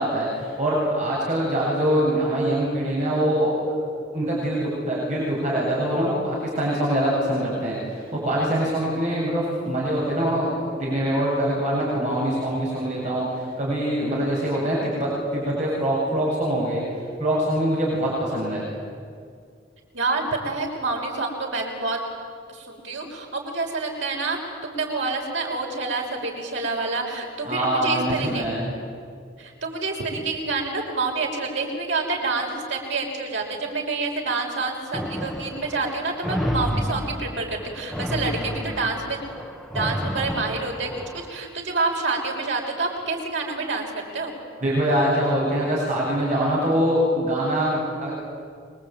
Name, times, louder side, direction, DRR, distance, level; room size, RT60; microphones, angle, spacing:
voice 1, 0.0-3.5 4.1-16.8 17.2-18.6 27.4-28.8 44.6-48.1, right 1 dB, 40° right, -4 dB, 7.9 m, -24 dB
voice 2, 19.9-22.0 22.5-28.5 29.4-39.2 39.7-44.3, right 3 dB, 85° right, 0 dB, 6.1 m, -28 dB
sound 1, 34.9-41.4, equal, ahead, 1.8 m, -30 dB
26.5 x 24.0 x 9.2 m, 2.2 s
head